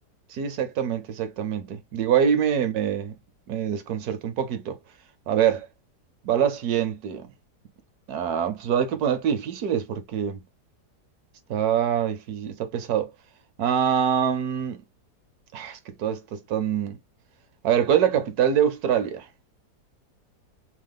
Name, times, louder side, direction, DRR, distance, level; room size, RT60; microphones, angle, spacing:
voice 1, 0.3-3.1 3.5-4.8 5.3-5.7 6.2-7.3 8.1-10.4 11.5-13.1 13.6-14.8 15.5-17.0 17.6-19.3, right 8 dB, 70° right, 1.1 m, -24 dB
3.1 x 2.1 x 3.3 m
omnidirectional pair, 1.8 m